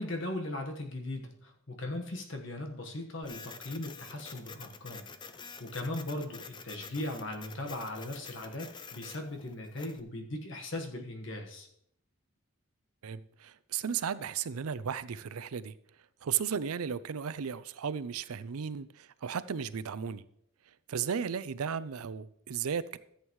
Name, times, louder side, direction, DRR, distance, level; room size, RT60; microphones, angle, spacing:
voice 1, 0.0-5.1 5.6-11.7, left 1 dB, 55° left, 1.4 m, -38 dB
Printer, 3.2-10.0, left 5 dB, 20° left, 0.4 m, -48 dB
voice 2, 13.0-15.7 16.2-20.2 20.9-23.0, right 7 dB, 85° right, 0.5 m, -35 dB
14.0 x 8.1 x 3.1 m
head